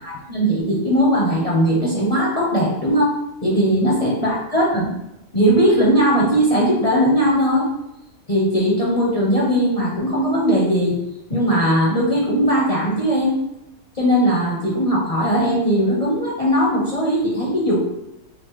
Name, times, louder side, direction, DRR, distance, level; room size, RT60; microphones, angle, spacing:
voice 1, 0.0-3.2 3.4-4.9 5.3-7.7 8.3-11.0 11.3-13.4 13.9-17.8, equal, 40° left, -5 dB, 0.5 m, -19 dB
5.1 x 2.0 x 3.0 m, 0.86 s
omnidirectional pair, 1.7 m